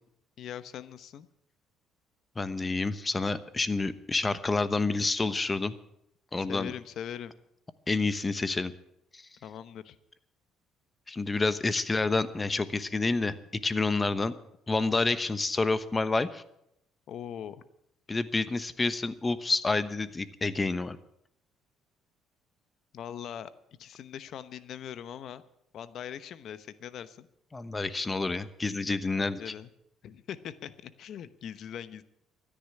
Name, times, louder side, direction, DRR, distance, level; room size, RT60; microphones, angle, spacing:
voice 1, 0.4-1.3 6.5-7.3 9.4-10.0 17.1-17.6 22.9-23.5 23.8-25.4 25.7-27.3 29.2-29.7 30.0-32.0, left 9 dB, 60° left, 14 dB, 1.0 m, -41 dB
voice 2, 2.4-5.7 6.3-6.7 7.9-8.7 9.1-9.2 11.1-13.4 13.6-14.3 14.7-16.4 18.1-21.0 27.5-29.5, left 3 dB, 20° left, 13 dB, 1.0 m, -28 dB
13.0 x 10.0 x 8.5 m, 0.78 s
cardioid pair, 105°, 0 cm